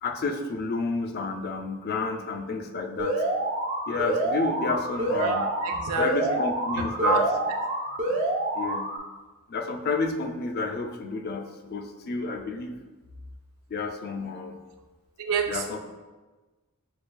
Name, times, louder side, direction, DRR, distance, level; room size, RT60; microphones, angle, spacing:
voice 1, 0.0-3.2 3.9-5.5 6.0-7.2 8.1-8.2 8.5-8.9 9.5-12.8 13.7-14.6 15.5-15.8, left 4 dB, 45° left, 5 dB, 0.3 m, -30 dB
Alarm, 3.0-9.0, right 1 dB, 35° right, 0.6 m, -27 dB
voice 2, 5.2-6.4 6.8-7.2 15.2-15.8, right 5 dB, 90° right, 5 dB, 0.4 m, -28 dB
6.6 x 2.3 x 2.2 m, 1.2 s
head